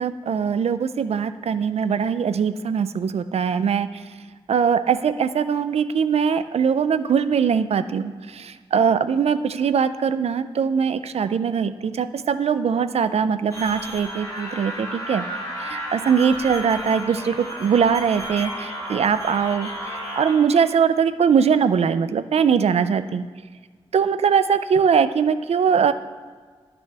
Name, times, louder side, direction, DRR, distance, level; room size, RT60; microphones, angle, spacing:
voice 1, 0.0-4.0 4.5-15.3 15.6-19.7 20.2-23.3 23.9-25.9, right 7 dB, 80° right, 12 dB, 0.4 m, -21 dB
sound 1, 13.5-20.3, equal, 35° left, 2.0 m, -33 dB
11.5 x 6.0 x 3.3 m, 1.5 s
wide cardioid pair, 120°, 11 cm